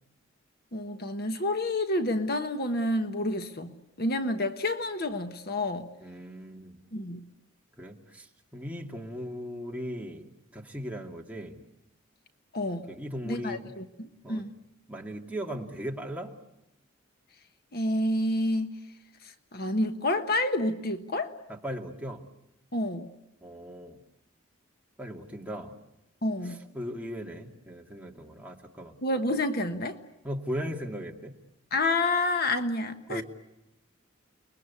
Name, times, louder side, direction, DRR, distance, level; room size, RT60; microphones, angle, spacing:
voice 1, 0.7-5.9 6.9-7.2 12.5-12.9 13.2-14.5 17.7-18.7 19.5-21.3 22.7-23.1 26.2-26.6 29.0-30.0 31.7-33.2, left 1 dB, 50° left, 8 dB, 1.3 m, -29 dB
voice 2, 6.0-6.8 7.8-11.6 12.9-13.7 14.2-14.5 14.9-16.3 21.5-22.2 23.4-24.0 25.0-25.7 26.4-29.0 30.2-31.3 33.1-33.2, equal, 5° right, 0 dB, 2.3 m, -38 dB
30.0 x 21.5 x 8.5 m, 0.91 s
head